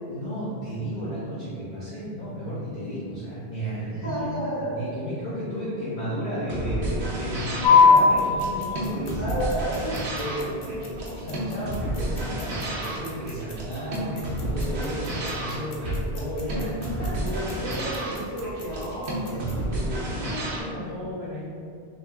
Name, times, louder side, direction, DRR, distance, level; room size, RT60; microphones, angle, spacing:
voice 1, 0.1-9.3 10.2-17.1 17.4-17.6 19.2-21.4, equal, 45° left, -12 dB, 0.9 m, -33 dB
voice 2, 3.9-4.8 9.2-10.0 17.2-19.6, equal, 15° left, -11 dB, 1.2 m, -31 dB
sound 1, 6.5-20.6, right 1 dB, 85° right, 1.0 m, -31 dB
sound 2, 7.6-19.7, left 5 dB, 75° left, 0.9 m, -26 dB
3.5 x 2.7 x 3.4 m, 2.4 s
omnidirectional pair, 1.1 m